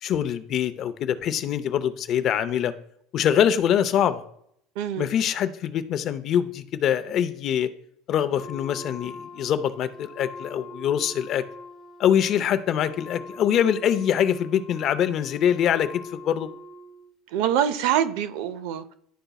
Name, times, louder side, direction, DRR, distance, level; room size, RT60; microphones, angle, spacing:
voice 1, 0.0-2.7 3.1-4.2 5.0-7.7 8.1-11.4 12.0-16.5, left 9 dB, 40° left, 0.5 m, -24 dB
voice 2, 4.8-5.1 17.3-18.9, right 10 dB, 70° right, 0.5 m, -25 dB
Wind instrument woodwind instrument, 8.3-17.1, left 2 dB, 20° left, 0.9 m, -43 dB
11.0 x 3.9 x 2.3 m
cardioid pair, 145°, 0 cm